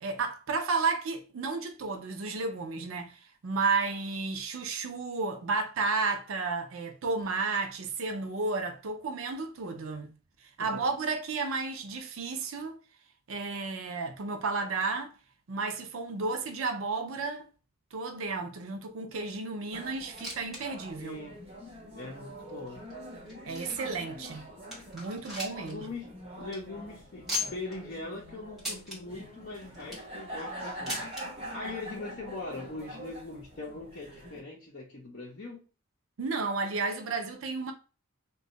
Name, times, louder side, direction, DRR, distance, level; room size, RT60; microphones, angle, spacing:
voice 1, 0.0-10.1 10.6-12.8 13.3-15.1 15.5-17.5 17.9-21.2 23.4-24.5 24.9-25.8 36.2-37.7, right 4 dB, 65° right, 0.5 m, -32 dB
sound 1, 19.7-34.4, equal, 25° right, 1.2 m, -44 dB
sound 2, 20.0-20.6 20.9-21.0 21.7-21.8 22.5-24.0 24.4-24.5 24.7-25.7 26.0-26.1 26.4-26.6 27.3-27.8 28.6-29.0 29.6-30.1 30.9-31.2 32.2-32.3 32.5-32.6 33.4-33.5, left 2 dB, ahead, 1.1 m, -37 dB
voice 2, 21.0-21.4 21.9-22.8 25.5-26.1 26.4-35.6, left 2 dB, 45° left, 0.7 m, -41 dB
2.7 x 2.3 x 3.9 m
head